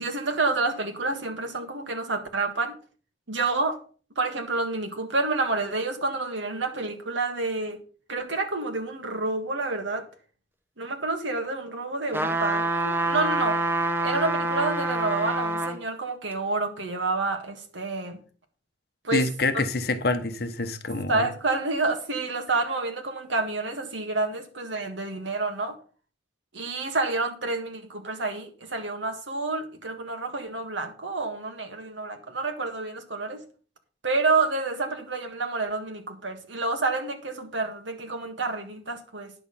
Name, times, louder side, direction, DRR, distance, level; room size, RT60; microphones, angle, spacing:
voice 1, 0.0-2.7 3.3-3.8 4.2-7.8 8.1-10.1 10.8-13.6 14.0-18.2 19.0-19.2 19.5-19.6 21.1-25.8 26.5-33.4 34.0-39.3, right 3 dB, 80° right, 1.7 m, -29 dB
sound 1, 12.1-15.8 16.3-16.4, right 2 dB, 10° right, 0.8 m, -26 dB
voice 2, 19.1-21.3, left 3 dB, 55° left, 0.9 m, -26 dB
9.8 x 6.7 x 5.5 m
head